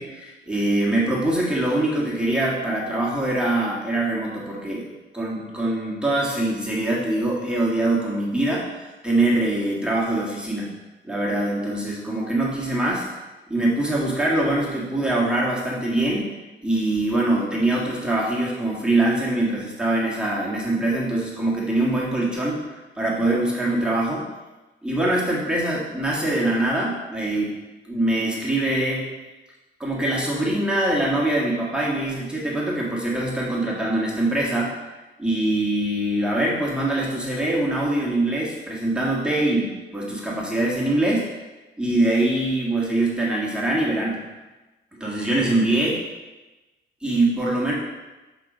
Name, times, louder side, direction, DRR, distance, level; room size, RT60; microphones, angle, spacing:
voice 1, 0.0-4.8 5.1-10.7 11.0-13.1 13.5-16.3 16.6-22.7 23.0-24.3 24.8-27.5 27.9-29.1 29.8-34.8 35.2-41.3 41.8-44.2 45.0-45.9 47.0-47.7, right 1 dB, 5° right, -5 dB, 1.7 m, -23 dB
7.1 x 3.9 x 5.0 m, 1.1 s
cardioid pair, 90°, 20 cm